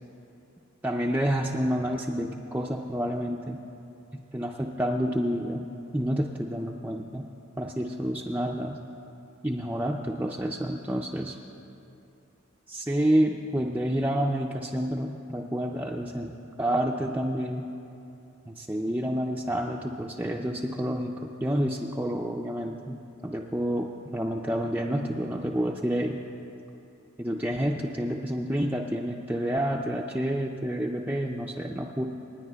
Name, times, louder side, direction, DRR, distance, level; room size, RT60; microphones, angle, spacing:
voice 1, 0.8-3.6 4.3-5.7 5.9-7.2 7.6-8.8 9.4-11.4 12.7-16.3 16.6-17.7 18.5-23.0 23.2-26.2 27.2-32.1, equal, 10° right, -1 dB, 0.4 m, -29 dB
28.5 x 10.0 x 2.2 m, 2.8 s
head